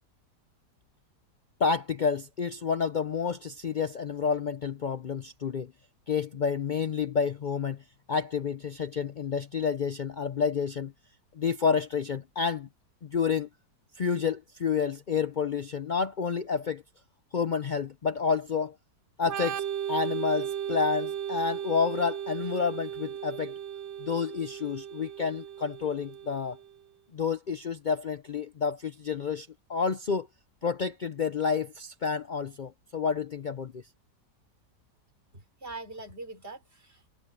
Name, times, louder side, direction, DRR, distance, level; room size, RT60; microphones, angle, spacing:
voice 1, 1.6-5.7 6.1-10.9 11.3-12.7 13.0-13.5 14.0-16.8 17.3-18.7 19.2-23.5 24.0-26.6 27.1-30.3 30.6-33.8, left 6 dB, 75° left, 0.4 m, -29 dB
Organ, 19.2-26.7, right 9 dB, 55° right, 0.9 m, -36 dB
voice 2, 35.3-37.1, right 3 dB, 35° right, 4.0 m, -43 dB
omnidirectional pair, 1.8 m